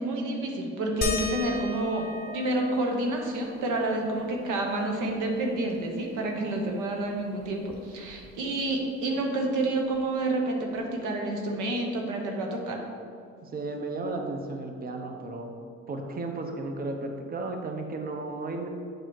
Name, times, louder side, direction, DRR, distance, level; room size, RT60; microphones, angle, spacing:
voice 1, 0.0-12.8, right 2 dB, 90° right, 1 dB, 1.1 m, -29 dB
sound 1, 1.0-6.1 6.5-6.6 6.9-8.7 9.9-10.0 10.8-10.9, left 3 dB, 30° left, 1.0 m, -38 dB
voice 2, 13.4-15.6 15.9-18.7, right 2 dB, 30° right, 4 dB, 0.8 m, -34 dB
9.1 x 4.1 x 4.6 m, 2.3 s
cardioid pair, 90°, 30 cm